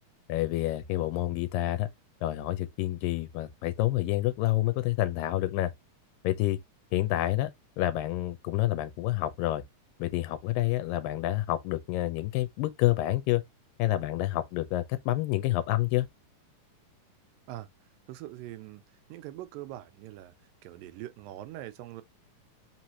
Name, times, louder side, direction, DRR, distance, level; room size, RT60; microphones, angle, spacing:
voice 1, 0.3-1.9 2.2-5.7 6.2-6.6 6.9-7.5 7.8-9.6 10.0-13.4 13.8-16.1, left 15 dB, 90° left, 2.3 m, -28 dB
voice 2, 18.1-18.8 19.1-20.3 20.6-22.0, right 14 dB, 90° right, 2.3 m, -42 dB
5.3 x 3.0 x 2.7 m
omnidirectional pair, 3.9 m